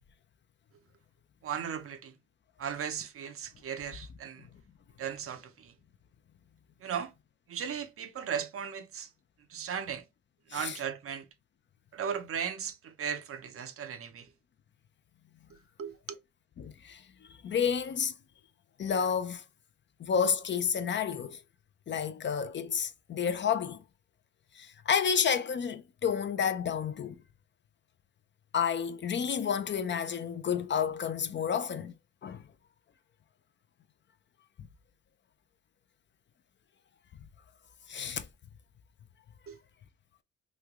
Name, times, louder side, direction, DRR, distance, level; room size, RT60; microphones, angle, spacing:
voice 1, 1.4-2.1 2.6-4.5 5.0-5.7 6.8-7.1 7.5-9.1 9.5-10.0 10.5-11.3 11.9-14.3 15.8-16.0 39.5-39.6, right 8 dB, 50° right, 0.5 m, -37 dB
voice 2, 16.6-17.0 17.4-18.1 18.8-19.4 20.0-21.4 21.9-23.8 24.6-27.2 28.5-31.9 32.2-32.4 37.9-38.3, left 7 dB, 40° left, 0.4 m, -30 dB
3.1 x 2.2 x 3.5 m
cardioid pair, 90°, 30 cm